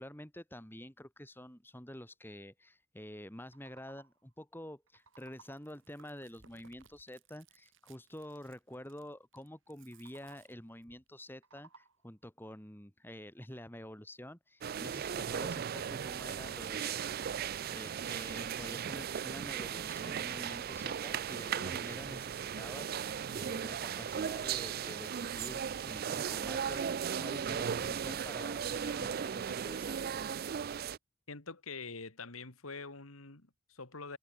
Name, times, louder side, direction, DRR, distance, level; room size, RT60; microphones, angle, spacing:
voice 1, 0.0-17.0 17.7-30.0, left 1 dB, 10° left, 3.2 m, -48 dB
sound 1, 3.4-4.3 4.7-5.8 9.8-10.7 11.1-12.2, right 4 dB, 85° right, 7.0 m, -62 dB
Chewing mastication, 5.0-11.1, right 6 dB, 60° right, 6.6 m, -65 dB
sound 2, 14.6-31.0, right 8 dB, 45° right, 0.4 m, -37 dB
voice 2, 31.3-34.2, left 4 dB, 90° left, 2.6 m, -45 dB
head